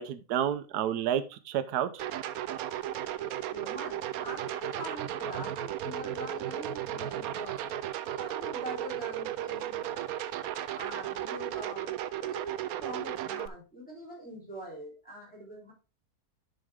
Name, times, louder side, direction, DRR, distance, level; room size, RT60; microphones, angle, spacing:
voice 1, 0.0-2.0, right 10 dB, 90° right, 12 dB, 1.2 m, -30 dB
sound 1, 2.0-13.5, right 11 dB, 75° right, 1.0 m, -35 dB
voice 2, 3.5-7.7 8.1-9.8 10.7-11.9 12.2-15.7, right 1 dB, 5° left, -3 dB, 4.1 m, -43 dB
10.5 x 5.2 x 3.5 m, 0.31 s
omnidirectional pair, 1.6 m